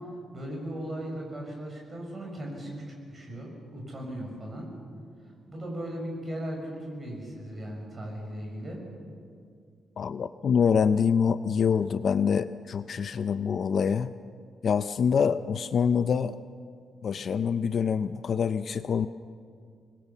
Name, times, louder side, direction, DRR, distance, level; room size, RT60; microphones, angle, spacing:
voice 1, 0.3-4.7 5.4-8.8, equal, 25° right, 0 dB, 5.9 m, -37 dB
voice 2, 10.0-14.1 14.6-16.4 17.0-19.1, left 6 dB, 45° left, 12 dB, 0.5 m, -25 dB
26.0 x 20.5 x 7.1 m, 2.3 s
wide cardioid pair, 170°, 0 cm